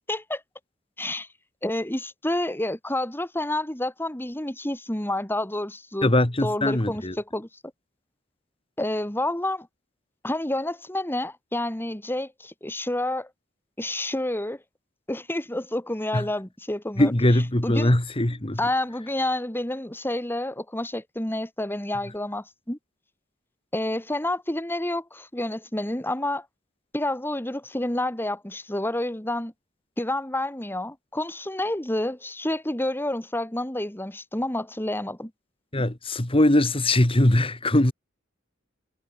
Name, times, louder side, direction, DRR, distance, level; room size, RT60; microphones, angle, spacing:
voice 1, 0.1-0.4 1.0-1.3 1.6-6.1 6.4-7.5 8.8-9.7 10.2-13.3 13.8-14.6 15.1-17.1 17.6-18.0 18.6-22.8 23.7-26.5 26.9-29.5 30.0-35.3, left 1 dB, 10° left, 2.0 m, -29 dB
voice 2, 6.0-7.2 16.1-16.3 17.0-18.6 35.7-37.9, left 1 dB, 30° left, 1.8 m, -21 dB
head